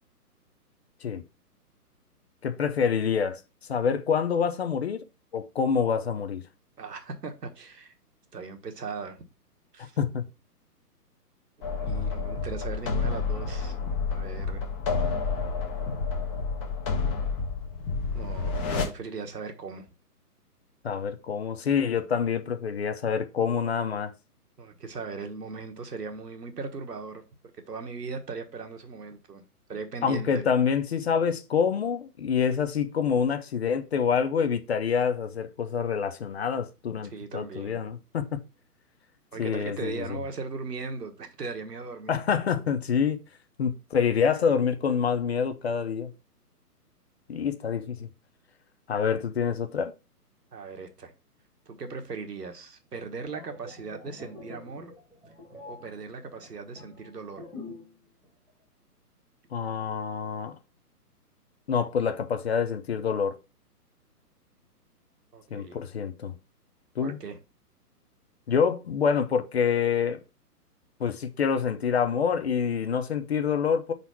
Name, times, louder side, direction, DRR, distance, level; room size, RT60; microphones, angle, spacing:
voice 1, 2.4-3.4 3.7-5.0 5.3-6.4 10.0-10.2 20.8-24.1 30.0-38.4 39.4-40.2 42.1-43.2 43.6-46.1 47.3-48.1 48.9-49.9 59.5-60.6 61.7-63.4 65.5-66.3 67.0-67.2 68.5-70.2 71.0-73.9, left 6 dB, 45° left, 0.5 m, -26 dB
voice 2, 6.8-7.9 8.3-9.2 9.7-10.0 11.8-13.8 14.1-14.6 18.1-19.9 24.6-27.2 27.7-29.4 29.7-30.4 37.1-37.8 39.3-42.2 50.5-51.1 51.7-54.9 55.7-57.4 65.3-65.8 67.0-67.4, right 4 dB, 80° right, 1.4 m, -38 dB
sound 1, 11.6-18.9, left 4 dB, 20° left, 0.9 m, -29 dB
sound 2, 53.2-58.0 58.2-58.5, left 2 dB, 5° right, 1.2 m, -45 dB
4.4 x 4.1 x 5.7 m
figure-of-eight pair, 135°, 48 cm